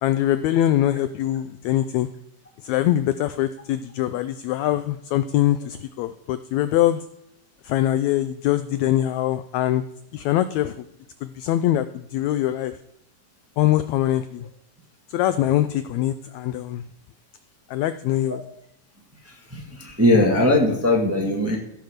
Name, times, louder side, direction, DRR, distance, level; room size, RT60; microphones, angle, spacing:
voice 1, 0.0-2.1 2.6-7.0 7.6-9.8 10.1-10.9 11.2-12.8 13.6-14.5 15.1-16.8 17.7-18.4, left 13 dB, 85° left, 12 dB, 1.6 m, -23 dB
voice 2, 19.5-21.6, left 1 dB, 5° right, 0 dB, 1.3 m, -19 dB
15.5 x 5.8 x 6.5 m, 0.79 s
omnidirectional pair, 3.8 m